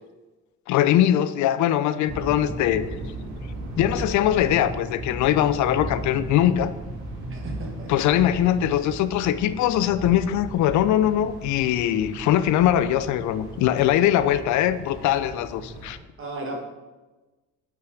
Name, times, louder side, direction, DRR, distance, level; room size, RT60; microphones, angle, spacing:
voice 1, 0.7-2.9 3.8-6.7 7.9-16.0, left 11 dB, 70° left, 13 dB, 0.4 m, -21 dB
sound 1, 2.1-16.0, right 1 dB, 70° right, 1.9 m, -36 dB
voice 2, 7.3-8.3 16.2-16.6, right 2 dB, 45° right, 0 dB, 1.6 m, -35 dB
5.6 x 4.7 x 5.0 m, 1.2 s
cardioid pair, 110°, 30 cm